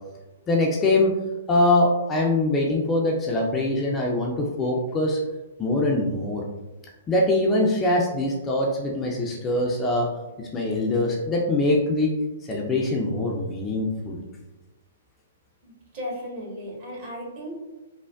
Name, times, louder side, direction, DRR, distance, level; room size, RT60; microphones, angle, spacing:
voice 1, 0.5-1.1 1.5-5.2 5.6-6.4 7.1-10.1 10.4-12.1 12.5-14.2, left 2 dB, 20° left, -1 dB, 0.4 m, -23 dB
voice 2, 15.6-17.5, equal, 45° right, -4 dB, 1.2 m, -35 dB
3.2 x 2.1 x 2.3 m, 1.1 s
figure-of-eight pair, 120°, 0 cm